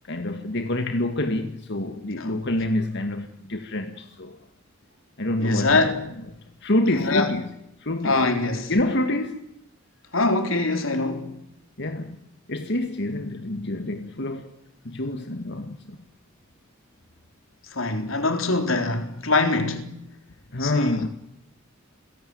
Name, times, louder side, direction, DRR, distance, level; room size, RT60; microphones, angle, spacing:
voice 1, 0.0-4.4 5.2-5.9 6.6-7.5 7.8-8.3 8.7-9.4 11.8-12.2 12.5-14.6 14.8-16.0 20.5-21.1, left 1 dB, 60° left, 2.0 m, -27 dB
voice 2, 5.4-6.1 7.0-7.3 8.0-8.7 10.1-11.4 17.7-20.0 20.6-21.0, left 3 dB, 80° left, 3.8 m, -23 dB
29.0 x 17.5 x 9.7 m
head